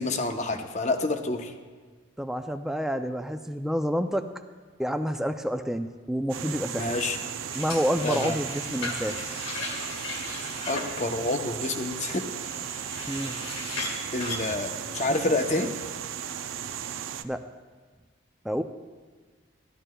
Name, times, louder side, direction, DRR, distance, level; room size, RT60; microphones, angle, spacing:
voice 1, 0.0-1.5 6.7-7.2 8.0-8.4 10.7-12.2 13.8-15.7, left 2 dB, 35° left, 6 dB, 0.7 m, -28 dB
voice 2, 2.2-4.3 4.8-6.9 7.5-9.2 13.1-13.3 17.2-17.4 18.4-18.6, equal, ahead, 7 dB, 0.3 m, -28 dB
sound 1, 6.3-17.2, right 9 dB, 80° right, 0.4 m, -36 dB
sound 2, 7.5-14.4, left 3 dB, 90° left, 2.1 m, -37 dB
15.0 x 12.5 x 2.3 m, 1.5 s
head